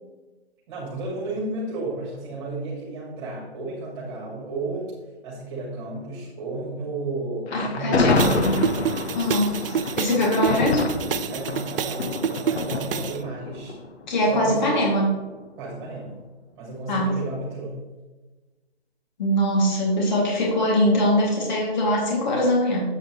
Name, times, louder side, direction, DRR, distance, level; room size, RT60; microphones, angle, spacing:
voice 1, 0.7-4.9 5.2-8.6 9.3-9.6 10.3-10.6 11.3-13.7 14.3-14.8 15.6-16.2 16.5-17.8, right 2 dB, 25° right, -5 dB, 2.3 m, -32 dB
Thunder, 7.5-14.7, left 3 dB, 80° left, 1.2 m, -27 dB
voice 2, 7.5-8.2 9.1-9.6 10.0-10.8 12.0-12.1 14.1-15.1 16.9-17.1 19.2-22.9, left 1 dB, 45° left, -3 dB, 2.6 m, -22 dB
sound 1, 8.2-13.2, right 8 dB, 60° right, 0.6 m, -28 dB
8.6 x 8.1 x 3.2 m, 1.2 s
hypercardioid pair, 160°, 32 cm